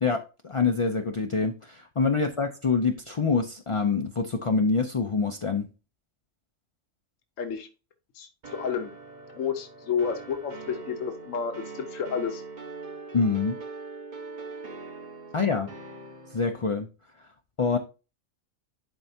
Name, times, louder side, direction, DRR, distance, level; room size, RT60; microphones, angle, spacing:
voice 1, 0.0-5.7 13.1-13.5 15.3-15.7 16.3-16.9 17.6-17.8, left 4 dB, 45° left, 4 dB, 0.4 m, -25 dB
voice 2, 7.4-7.7 8.1-8.9 9.3-12.4, left 6 dB, 75° left, 5 dB, 1.3 m, -31 dB
sound 1, 8.4-16.7, right 3 dB, 40° right, 1.1 m, -42 dB
11.5 x 4.5 x 2.7 m, 0.31 s
omnidirectional pair, 1.3 m